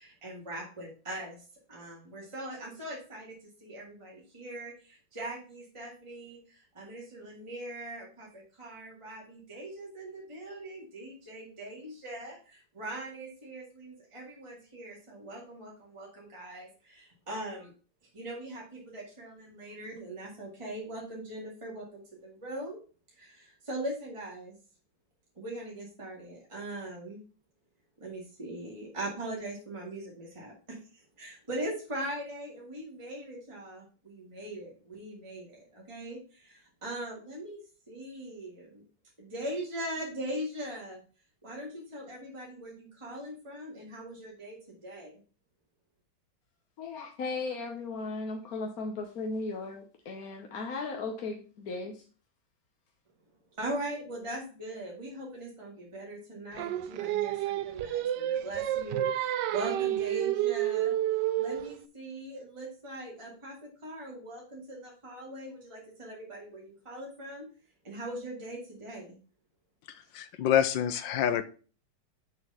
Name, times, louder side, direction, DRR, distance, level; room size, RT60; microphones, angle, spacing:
voice 1, 0.0-1.4 1.7-3.4 3.6-17.7 18.1-22.8 23.2-24.5 25.4-27.2 28.0-30.8 31.2-37.6 37.9-38.8 39.2-41.0 41.4-44.6 44.8-45.2 53.6-60.9 61.3-67.5 67.8-69.2, right 1 dB, 15° right, 2.1 m, -41 dB
voice 2, 46.8-52.0, left 3 dB, 55° left, 1.3 m, -36 dB
Singing, 56.6-61.8, right 12 dB, 75° right, 1.1 m, -30 dB
voice 3, 70.1-71.4, left 9 dB, 80° left, 1.4 m, -26 dB
6.5 x 4.7 x 5.5 m
omnidirectional pair, 2.1 m